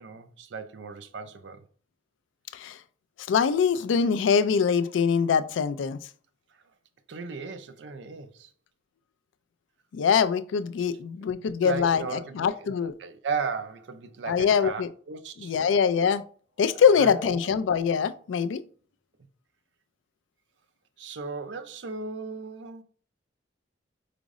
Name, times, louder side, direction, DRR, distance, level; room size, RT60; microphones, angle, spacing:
voice 1, 0.0-1.6 7.1-8.5 11.2-11.3 11.6-15.5 17.0-17.4 21.0-22.8, right 5 dB, 70° right, 0.5 m, -36 dB
voice 2, 3.3-6.0 9.9-12.9 14.3-14.9 15.4-16.2 16.6-18.6, left 6 dB, 90° left, 0.3 m, -23 dB
sound 1, 16.6-18.2, right 1 dB, 30° right, 0.9 m, -45 dB
5.0 x 2.0 x 3.5 m
head